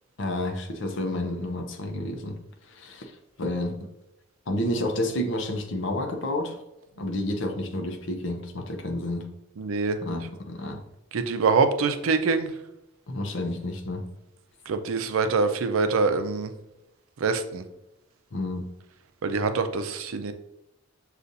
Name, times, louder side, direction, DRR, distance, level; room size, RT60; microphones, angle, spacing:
voice 1, 0.2-2.4 2.7-3.1 3.4-3.8 4.5-6.6 7.0-9.3 10.0-10.8 13.1-14.0 18.3-18.7, left 1 dB, 65° left, 4 dB, 0.6 m, -30 dB
voice 2, 9.6-10.0 11.1-12.5 14.7-16.5 17.2-17.6 19.2-20.3, right 4 dB, 85° right, 9 dB, 0.4 m, -24 dB
6.7 x 2.4 x 2.6 m, 0.90 s
head